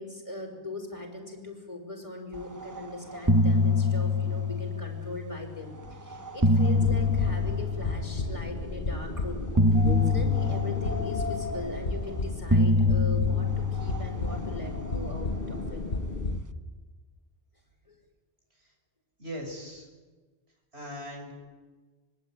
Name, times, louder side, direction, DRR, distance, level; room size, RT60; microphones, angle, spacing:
voice 1, 0.0-9.5 10.0-15.8 17.9-18.0, left 2 dB, 30° left, 1 dB, 5.5 m, -40 dB
sound 1, 2.6-2.9 3.1-5.4 6.1-8.5 9.6-12.0 12.5-15.1, left 2 dB, 20° right, 0.9 m, -25 dB
sound 2, 6.7-16.4, left 2 dB, 60° left, 1.7 m, -33 dB
voice 2, 19.2-19.9 20.7-21.3, equal, 85° right, 2 dB, 6.2 m, -39 dB
25.0 x 22.0 x 9.3 m, 1.4 s
omnidirectional pair, 1.1 m